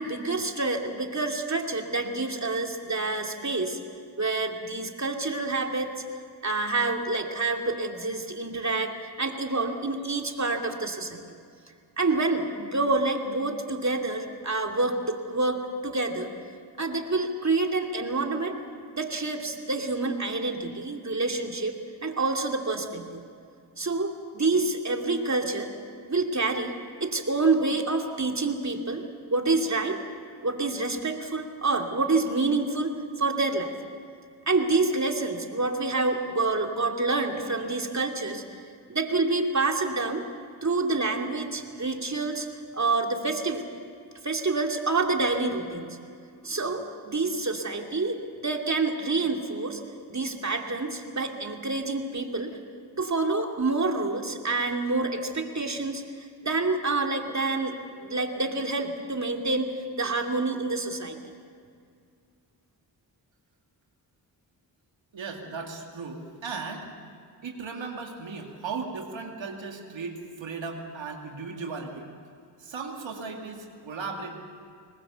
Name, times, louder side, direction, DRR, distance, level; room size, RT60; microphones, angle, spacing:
voice 1, 0.0-3.8 4.2-5.9 6.4-8.9 9.2-11.2 12.0-16.3 16.8-18.5 18.9-23.2 23.8-25.7 26.1-29.0 29.3-30.0 30.4-33.7 34.5-38.6 38.9-40.2 40.6-42.5 42.7-43.6 44.2-46.0 46.4-49.8 50.1-52.6 53.0-61.2, right 3 dB, 40° right, 3 dB, 2.7 m, -27 dB
voice 2, 65.1-66.9 67.4-72.1 72.6-74.4, right 4 dB, 85° right, 2 dB, 2.3 m, -36 dB
23.0 x 19.5 x 7.0 m, 2.3 s
cardioid pair, 40°, 44 cm